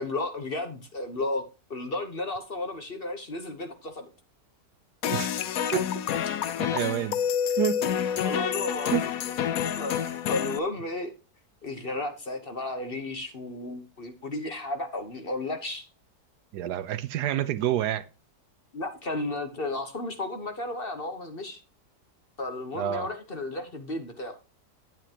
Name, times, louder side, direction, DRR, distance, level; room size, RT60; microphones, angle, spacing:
voice 1, 0.0-1.4 1.7-4.1 8.2-9.0 9.5-11.1 11.6-15.9 18.7-21.6 22.4-24.4, left 2 dB, 40° left, 1.2 m, -33 dB
sound 1, 5.0-10.6, left 9 dB, 65° left, 1.1 m, -28 dB
voice 2, 6.6-7.2 7.6-7.8 8.9-9.1 16.5-18.0 22.7-23.1, right 11 dB, 75° right, 1.2 m, -28 dB
10.0 x 9.1 x 2.9 m
omnidirectional pair, 1.8 m